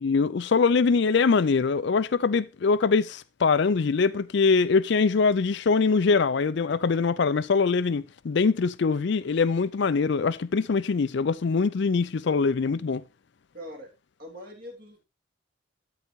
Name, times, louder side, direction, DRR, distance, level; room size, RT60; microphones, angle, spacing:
voice 1, 0.0-13.0, left 4 dB, 55° left, 0.4 m, -23 dB
voice 2, 13.5-13.9 14.2-15.1, equal, 45° right, 3.2 m, -42 dB
13.0 x 4.3 x 5.1 m
head